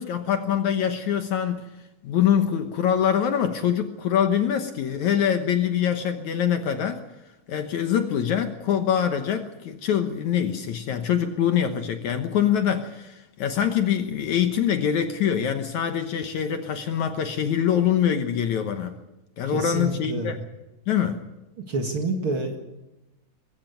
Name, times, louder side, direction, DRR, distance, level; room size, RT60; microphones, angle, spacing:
voice 1, 0.0-1.7 2.0-7.0 7.5-19.0 19.4-20.4 20.9-21.2, left 9 dB, 65° left, 7 dB, 2.2 m, -24 dB
voice 2, 19.5-20.3 21.6-22.6, right 2 dB, 45° right, 4 dB, 2.2 m, -28 dB
22.0 x 15.0 x 9.3 m, 1.0 s
omnidirectional pair, 4.2 m